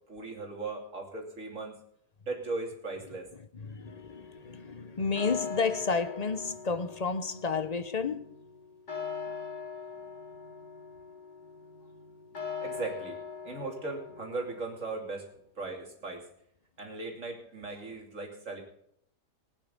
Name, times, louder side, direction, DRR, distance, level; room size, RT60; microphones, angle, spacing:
voice 1, 0.1-1.8 2.3-3.3 12.6-13.2 13.4-15.3 15.6-16.2 16.8-18.6, right 3 dB, 50° right, 3.4 m, -38 dB
voice 2, 3.5-8.3, left 5 dB, 45° left, 0.5 m, -31 dB
sound 1, 3.9-15.0, left 6 dB, 85° left, 3.8 m, -42 dB
19.0 x 9.7 x 3.9 m
omnidirectional pair, 1.7 m